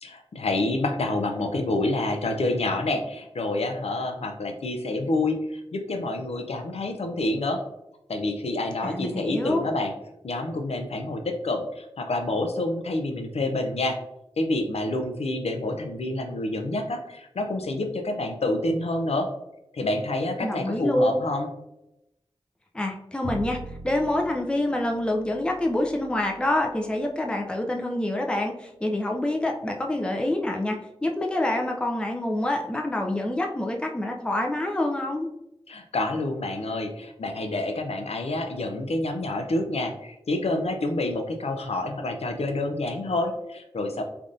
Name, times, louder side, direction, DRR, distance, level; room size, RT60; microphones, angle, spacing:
voice 1, 0.0-7.6 8.1-9.9 10.2-14.0 14.4-19.3 19.7-21.5 35.7-44.0, left 2 dB, 80° left, 4 dB, 0.5 m, -28 dB
voice 2, 8.8-9.7 20.4-21.2 22.7-23.6 23.8-35.3, left 1 dB, 10° left, 2 dB, 0.4 m, -26 dB
Bowed string instrument, 23.2-29.4, right 2 dB, 65° right, 0.7 m, -44 dB
3.3 x 2.5 x 2.5 m, 0.87 s
cardioid pair, 45°, 10 cm